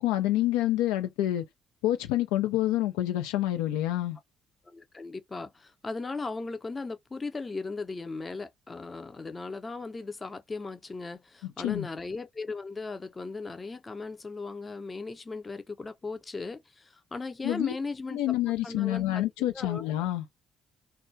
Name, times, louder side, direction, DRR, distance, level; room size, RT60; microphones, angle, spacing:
voice 1, 0.0-1.4 1.8-4.2 11.6-11.9 17.4-17.7 18.1-20.3, left 14 dB, 85° left, 0.3 m, -27 dB
voice 2, 4.6-18.3 18.6-19.2 19.5-19.8, left 3 dB, 30° left, 0.6 m, -37 dB
2.2 x 2.1 x 2.6 m
hypercardioid pair, 60°, 0 cm